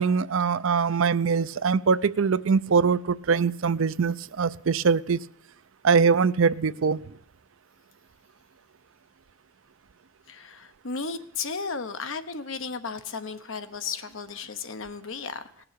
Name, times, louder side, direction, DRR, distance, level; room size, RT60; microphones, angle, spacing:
voice 1, 0.0-5.2 5.8-7.0, right 5 dB, 65° right, 16 dB, 0.5 m, -23 dB
voice 2, 10.3-15.6, left 5 dB, 65° left, 9 dB, 1.0 m, -34 dB
18.0 x 6.9 x 8.4 m, 0.69 s
head